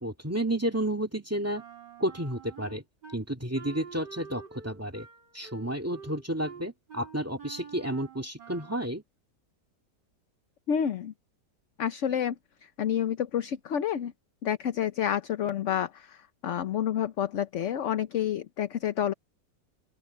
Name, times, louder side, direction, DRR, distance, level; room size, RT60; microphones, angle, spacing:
voice 1, 0.0-1.6 2.0-2.8 3.1-5.1 5.3-9.0, right 1 dB, 10° right, 2.1 m, -31 dB
Wind instrument woodwind instrument, 1.5-3.2 3.5-8.9, right 6 dB, 80° right, 4.6 m, -47 dB
voice 2, 10.7-11.1 11.8-12.3 12.6-14.1 14.4-19.1, left 9 dB, 55° left, 1.0 m, -29 dB
open air
omnidirectional pair, 1.9 m